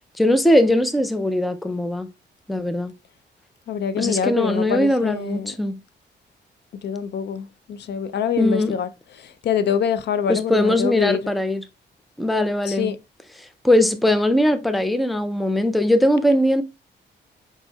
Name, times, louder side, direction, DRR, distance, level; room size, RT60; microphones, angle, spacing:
voice 1, 0.2-2.1 2.5-2.9 4.0-5.8 8.4-8.8 10.3-11.6 12.2-12.9 13.6-16.6, left 1 dB, ahead, 0.4 m, -20 dB
voice 2, 3.7-5.5 6.8-8.9 9.2-11.2 12.7-13.0, left 7 dB, 65° left, 0.4 m, -25 dB
4.6 x 4.2 x 2.2 m
wide cardioid pair, 145°, 19 cm